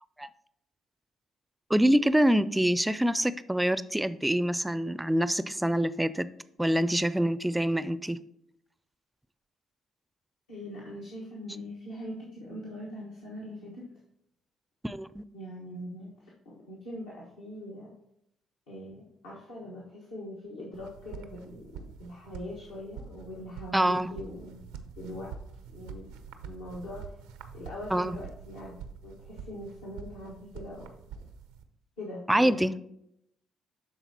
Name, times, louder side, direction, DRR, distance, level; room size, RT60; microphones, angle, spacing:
voice 1, 1.7-6.3 6.6-8.2 14.8-15.2 23.7-24.1 27.9-28.1 32.3-32.8, right 1 dB, 10° right, 15 dB, 0.4 m, -25 dB
voice 2, 10.5-13.8 15.3-16.1 16.4-17.9 18.7-24.6 25.0-25.3 25.7-26.1 26.4-27.2 27.5-30.9 32.0-32.8, left 1 dB, 80° left, -6 dB, 1.2 m, -42 dB
sound 1, 20.7-31.6, right 6 dB, 80° right, 0.5 m, -46 dB
11.5 x 4.0 x 2.8 m, 0.77 s
hypercardioid pair, 45°, 0 cm